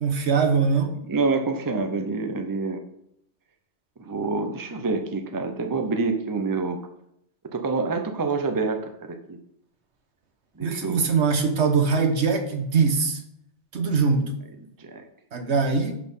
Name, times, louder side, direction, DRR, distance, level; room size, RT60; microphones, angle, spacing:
voice 1, 0.0-0.9 10.6-13.2 13.7-14.3 15.3-15.9, right 5 dB, 70° right, 6 dB, 1.4 m, -22 dB
voice 2, 1.1-2.8 4.0-6.8 7.5-9.4 10.6-11.0 14.8-15.0, right 4 dB, 20° right, 6 dB, 0.7 m, -27 dB
11.5 x 4.3 x 5.5 m, 0.75 s
omnidirectional pair, 1.2 m